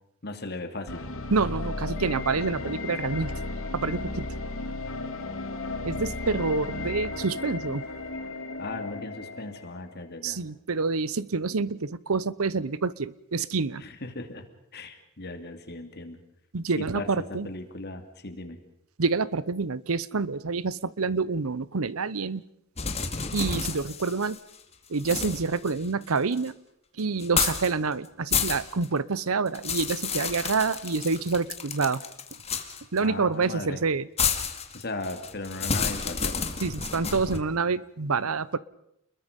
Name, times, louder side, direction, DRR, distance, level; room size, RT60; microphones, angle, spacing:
voice 1, 0.2-1.1 8.6-10.4 13.8-14.4 14.7-16.2 16.8-18.6 33.0-33.8 34.7-36.4, left 2 dB, 50° left, 7 dB, 2.7 m, -37 dB
sound 1, 0.9-9.9, left 2 dB, 70° left, 2.3 m, -34 dB
voice 2, 1.3-3.3 3.7-4.3 5.8-7.8 10.2-13.8 16.5-17.5 19.0-22.4 23.3-24.4 24.9-26.5 27.0-32.0 32.9-34.1 36.6-38.6, right 4 dB, 80° right, 19 dB, 0.8 m, -27 dB
sound 2, 22.8-24.6 25.0-26.5 27.2-27.7 28.1-28.9 29.2-33.0 34.2-37.4, left 6 dB, 30° left, 2.1 m, -30 dB
29.5 x 21.5 x 5.3 m, 0.77 s
head